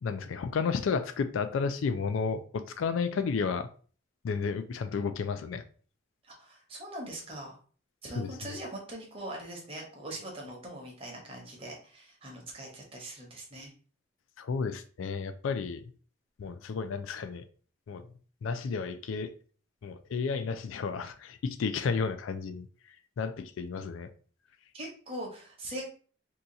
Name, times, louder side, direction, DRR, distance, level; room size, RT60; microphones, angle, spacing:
voice 1, 0.0-3.7 4.2-5.6 8.1-8.3 14.4-15.9 16.4-17.4 17.9-18.1 18.4-19.3 19.8-22.7 23.2-24.1, left 5 dB, 85° left, 0.4 m, -32 dB
voice 2, 6.3-7.6 8.0-13.7 24.7-25.9, right 1 dB, 30° right, 0.9 m, -41 dB
2.8 x 2.3 x 3.8 m
head